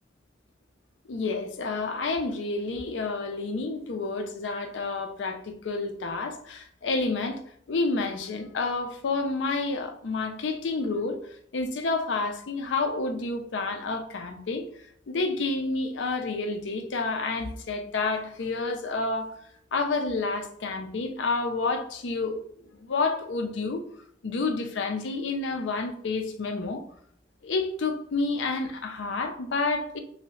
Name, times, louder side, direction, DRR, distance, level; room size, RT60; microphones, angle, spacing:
voice 1, 1.1-7.4 7.7-11.2 11.5-14.7 15.1-19.3 19.7-22.4 22.7-23.8 24.2-26.8 27.4-30.0, left 3 dB, 80° left, 0.5 m, -29 dB
3.1 x 2.7 x 3.1 m
head